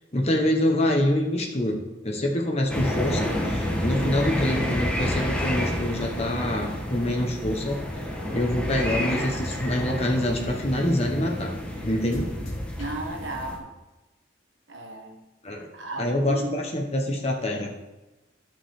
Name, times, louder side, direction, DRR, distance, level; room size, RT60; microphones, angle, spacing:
voice 1, 0.1-7.8 8.3-11.5 11.8-12.3 15.4-15.7 16.0-17.7, left 1 dB, 30° left, 1 dB, 1.3 m, -26 dB
sound 1, 2.7-13.6, equal, 5° left, 1.3 m, -30 dB
sound 2, 7.2-10.3 10.8-11.4 12.1-13.1, left 1 dB, 90° left, 2.4 m, -42 dB
voice 2, 12.8-13.7 14.7-15.2 15.5-16.7 17.1-17.2, right 2 dB, 70° right, 3 dB, 1.4 m, -35 dB
13.0 x 6.0 x 3.8 m, 1.1 s
head